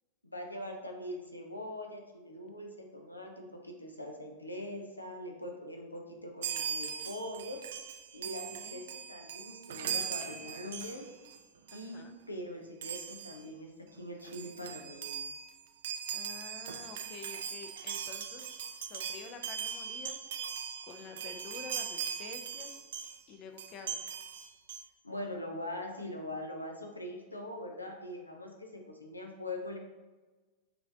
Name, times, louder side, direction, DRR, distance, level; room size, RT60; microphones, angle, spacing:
voice 1, 0.2-7.6 8.1-11.1 11.7-13.7 14.0-15.2 25.0-29.8, left 1 dB, 85° left, 2 dB, 0.7 m, -42 dB
Chime, 6.4-11.4 11.7-11.9 12.8-13.4 14.0-14.1 14.2-23.2 23.6-24.8, right 8 dB, 60° right, 0.4 m, -40 dB
voice 2, 8.5-8.8 11.7-12.2 16.1-18.5 18.9-20.2 20.9-22.7 23.3-24.0, left 5 dB, 40° left, 6 dB, 0.5 m, -49 dB
5.8 x 3.2 x 2.7 m, 1.3 s
figure-of-eight pair, 90°, 0 cm